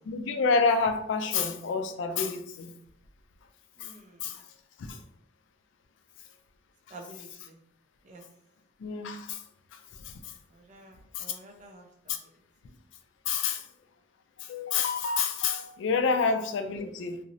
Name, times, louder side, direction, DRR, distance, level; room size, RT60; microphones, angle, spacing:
voice 1, 0.1-2.7 3.8-3.9 4.2-4.4 4.8-5.0 8.8-9.4 10.0-10.1 11.1-11.2 12.1-12.2 13.3-13.6 14.4-17.2, left 5 dB, 65° left, 0.3 m, -28 dB
voice 2, 3.8-4.3 6.9-7.6 8.0-8.2 10.5-11.9 16.8-16.9, right 2 dB, 40° right, 0.4 m, -49 dB
2.8 x 2.0 x 2.6 m
head